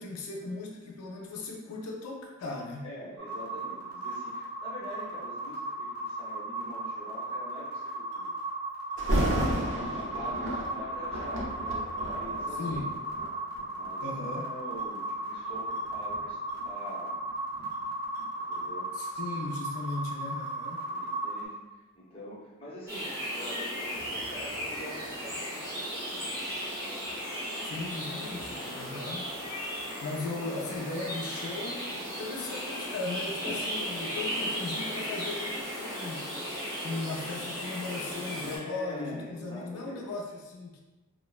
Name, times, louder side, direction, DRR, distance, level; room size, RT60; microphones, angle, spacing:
voice 1, 0.0-2.9 12.6-12.9 14.0-14.5 18.9-20.9 27.6-29.3 30.0-36.3 36.8-40.8, left 3 dB, 80° left, 0 dB, 0.4 m, -37 dB
voice 2, 2.8-8.3 9.0-13.0 13.7-17.3 18.4-18.9 19.3-19.5 20.9-21.6 22.0-26.3 30.3-30.6 38.4-40.2, left 1 dB, 25° left, -6 dB, 0.5 m, -45 dB
sound 1, 3.2-21.5, right 2 dB, 90° right, 0.7 m, -36 dB
Thunder, 9.0-13.9 14.6-14.8 15.5-18.3 18.6-18.7, right 1 dB, 55° right, 0.5 m, -33 dB
sound 2, 22.9-38.6, equal, 10° right, 0.7 m, -36 dB
3.0 x 2.0 x 2.3 m, 1.1 s
head